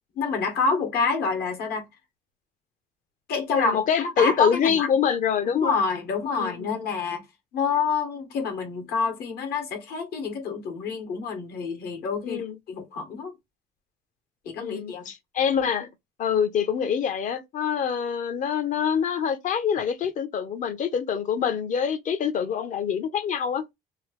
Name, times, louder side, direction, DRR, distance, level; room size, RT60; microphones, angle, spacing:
voice 1, 0.1-1.9 3.3-4.9 5.4-7.2 7.5-12.4 12.7-13.3 14.4-15.1, left 4 dB, 70° left, 1.1 m, -27 dB
voice 2, 3.5-5.7 6.4-6.8 12.2-12.6 14.6-15.9 16.2-23.7, left 7 dB, 50° left, 0.7 m, -25 dB
2.9 x 2.4 x 3.1 m
cardioid pair, 110°, 17 cm